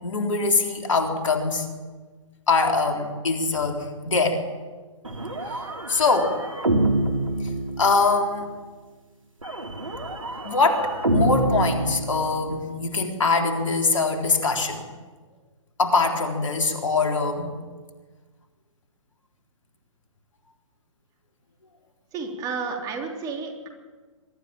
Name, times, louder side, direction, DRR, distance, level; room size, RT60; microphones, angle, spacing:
voice 1, 0.0-1.7 2.5-4.4 5.9-6.4 7.8-8.5 10.4-14.8 15.8-17.5, left 3 dB, 70° left, 3 dB, 3.8 m, -23 dB
sound 1, 5.0-8.3 9.4-12.7, right 1 dB, 85° right, 3.2 m, -27 dB
voice 2, 22.1-23.7, right 4 dB, 20° right, 3 dB, 3.4 m, -31 dB
23.0 x 13.5 x 9.0 m, 1.4 s
figure-of-eight pair, 130°, 17 cm